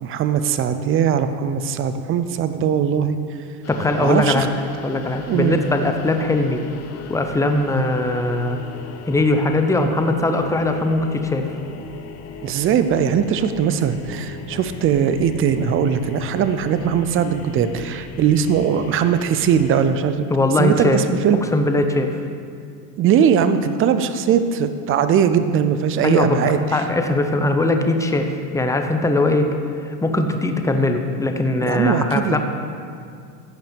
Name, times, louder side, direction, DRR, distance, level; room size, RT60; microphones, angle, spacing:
voice 1, 0.0-3.2 4.0-4.5 5.3-5.6 12.4-20.3 20.6-21.4 23.0-26.8 31.6-32.4, right 8 dB, 30° right, 11 dB, 0.6 m, -20 dB
sound 1, 3.6-19.9, left 5 dB, 40° left, 0.9 m, -38 dB
voice 2, 3.7-4.5 4.8-6.6 7.1-8.6 9.1-11.4 20.3-21.0 21.5-22.2 26.0-26.4 26.7-29.5 29.8-32.4, left 2 dB, 5° left, 5 dB, 0.7 m, -20 dB
15.0 x 5.6 x 5.2 m, 2.3 s
supercardioid pair, 110°, 42 cm